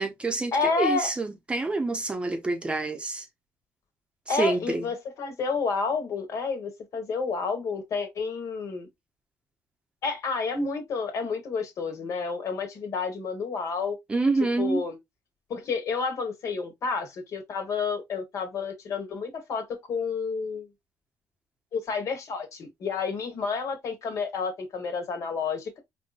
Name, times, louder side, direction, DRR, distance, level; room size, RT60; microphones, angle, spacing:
voice 1, 0.0-3.2 4.3-4.9 14.1-14.8, right 3 dB, 20° right, 0.7 m, -27 dB
voice 2, 0.5-1.1 4.3-8.9 10.0-14.0 14.6-15.0 15.5-20.7 21.7-25.8, left 5 dB, 60° left, 1.4 m, -30 dB
4.2 x 2.7 x 2.4 m
cardioid pair, 105°, 6 cm